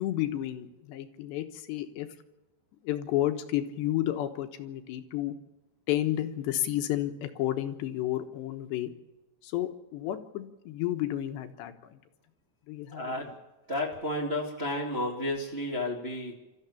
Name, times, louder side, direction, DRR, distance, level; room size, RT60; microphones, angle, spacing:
voice 1, 0.0-2.1 2.8-5.3 5.9-8.9 9.4-12.0 12.7-13.3, left 13 dB, 80° left, 7 dB, 3.3 m, -31 dB
voice 2, 12.9-13.3 13.7-16.3, left 1 dB, 20° right, -1 dB, 2.0 m, -32 dB
27.5 x 14.0 x 7.3 m, 1.0 s
omnidirectional pair, 5.1 m